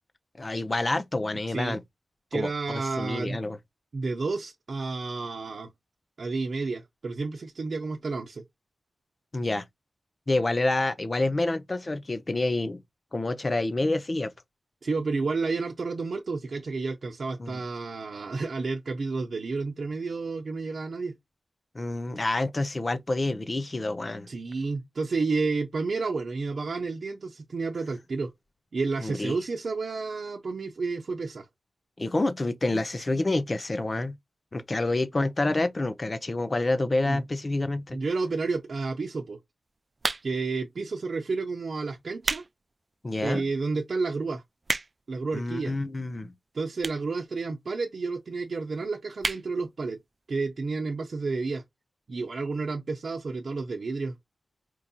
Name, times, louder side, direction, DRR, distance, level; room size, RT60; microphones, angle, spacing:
voice 1, 0.4-1.8 2.3-3.6 9.3-9.6 10.3-12.8 13.1-14.3 17.4-17.6 21.7-24.3 29.0-29.4 32.0-34.2 34.5-38.0 43.0-43.4 45.3-46.3, left 2 dB, 40° left, 0.6 m, -28 dB
voice 2, 1.5-1.8 2.3-3.4 3.9-5.7 6.2-8.4 14.8-21.2 24.3-28.3 28.7-31.5 37.0-37.2 37.9-39.4 40.2-42.4 43.2-44.4 45.1-45.8 46.5-50.0 50.3-51.6 52.1-54.2, right 4 dB, 70° right, 0.7 m, -31 dB
sound 1, 40.0-40.5 41.3-41.5 42.0-42.5 42.9-43.0 43.7-43.8 43.9-44.0 44.3-45.1 45.9-46.0 46.8-47.1 47.4-47.5 47.7-47.8 48.0-48.1 48.4-48.7 49.2-49.5 49.9-50.0 50.1-50.2, right 3 dB, 50° right, 0.3 m, -30 dB
4.6 x 2.7 x 2.2 m
cardioid pair, 55°, 0 cm